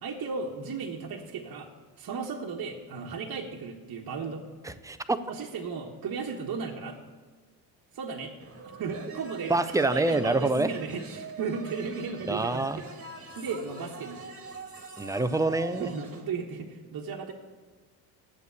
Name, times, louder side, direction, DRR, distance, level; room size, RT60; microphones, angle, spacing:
voice 1, 0.0-4.4 5.3-7.0 7.9-8.3 8.8-12.9 13.4-14.2 15.8-17.3, right 5 dB, 45° right, 0 dB, 1.3 m, -35 dB
voice 2, 4.6-5.2 9.5-10.7 12.3-12.8 15.0-15.9, right 2 dB, 5° right, 11 dB, 0.6 m, -26 dB
sound 1, 8.4-16.3, right 4 dB, 30° right, 1.7 m, -44 dB
8.4 x 7.2 x 8.0 m, 1.5 s
supercardioid pair, 65°, 47 cm